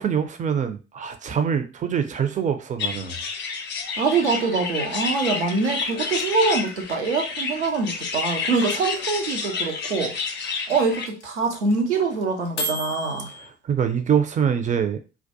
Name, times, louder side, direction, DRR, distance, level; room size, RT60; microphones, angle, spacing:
voice 1, 0.0-3.2 13.4-15.0, right 7 dB, 25° right, 0.4 m, -24 dB
sound 1, 2.8-11.1, left 5 dB, 35° left, 0.5 m, -30 dB
voice 2, 4.0-10.1 10.7-13.3, right 4 dB, 90° right, 0.5 m, -24 dB
sound 2, 5.2-13.5, right 1 dB, 80° left, 0.5 m, -33 dB
2.2 x 2.1 x 2.7 m
figure-of-eight pair, 45°, 34 cm